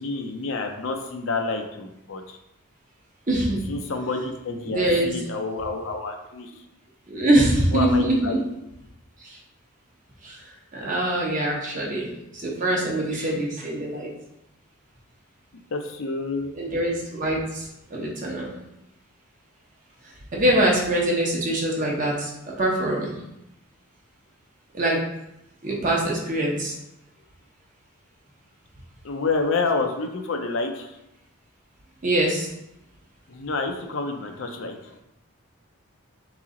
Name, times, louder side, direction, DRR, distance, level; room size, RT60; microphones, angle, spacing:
voice 1, 0.0-2.4 3.7-6.5 7.7-8.4 15.7-16.5 29.0-31.0 33.3-35.0, left 3 dB, 65° left, 4 dB, 0.5 m, -28 dB
voice 2, 3.3-3.6 4.7-5.1 7.1-8.4 9.2-9.4 10.2-14.1 16.5-18.5 20.0-23.2 24.7-25.0 25.6-26.7 32.0-32.5, right 1 dB, 35° right, -2 dB, 0.9 m, -24 dB
3.9 x 3.1 x 3.7 m, 0.85 s
head